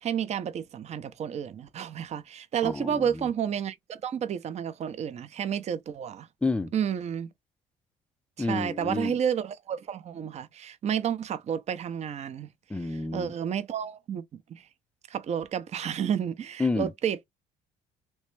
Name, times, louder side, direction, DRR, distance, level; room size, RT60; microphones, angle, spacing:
voice 1, 0.0-6.3 6.7-7.3 8.4-12.5 13.1-14.2 14.5-14.6 15.1-17.2, right 8 dB, 40° right, 0.6 m, -31 dB
voice 2, 2.6-3.3 6.4-6.7 8.4-9.1 12.7-13.3 16.6-16.9, left 3 dB, 5° left, 0.3 m, -29 dB
3.2 x 3.1 x 3.1 m
cardioid pair, 110°, 17 cm